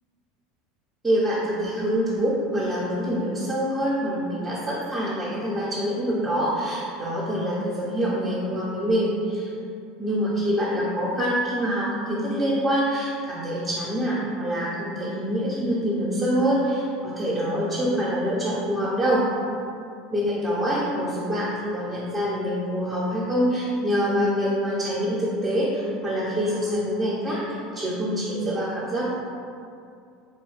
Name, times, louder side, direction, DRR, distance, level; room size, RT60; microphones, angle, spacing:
voice 1, 1.0-9.5 10.0-19.2 20.1-29.1, equal, 10° right, -9 dB, 0.8 m, -25 dB
3.5 x 2.2 x 4.0 m, 2.4 s
figure-of-eight pair, 75°, 0 cm